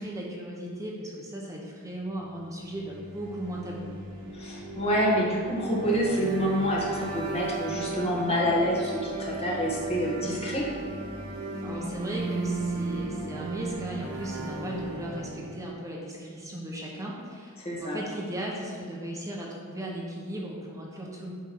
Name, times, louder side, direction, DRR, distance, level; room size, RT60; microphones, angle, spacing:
voice 1, 0.0-3.9 11.6-17.5 17.8-21.3, right 1 dB, 15° right, -3 dB, 1.0 m, -37 dB
sound 1, 2.7-15.7, right 3 dB, 85° right, 1.2 m, -36 dB
voice 2, 4.3-10.6 17.6-18.0, equal, 30° left, -4 dB, 1.6 m, -27 dB
8.4 x 3.6 x 6.1 m, 2.1 s
head